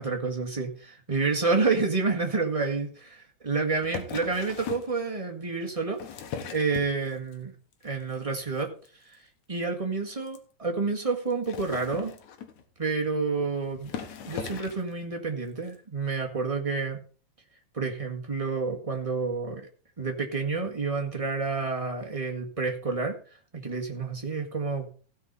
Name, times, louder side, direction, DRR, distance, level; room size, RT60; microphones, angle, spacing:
voice 1, 0.0-6.0 6.5-7.5 7.8-8.7 9.0-9.2 9.5-12.1 12.8-13.9 14.2-17.0 17.7-19.7 20.0-23.1 23.5-24.9, right 4 dB, 15° right, 1 dB, 1.2 m, -29 dB
sound 1, 3.8-4.9 5.8-7.3 7.7-8.1 8.4-8.6 8.8-8.9 9.1-9.2 9.6-9.7 10.3-10.4 11.3-12.7 13.4-13.5 13.8-14.9 15.7-15.8, left 7 dB, 75° left, 2.6 m, -38 dB
16.0 x 5.6 x 5.5 m, 0.39 s
omnidirectional pair, 3.4 m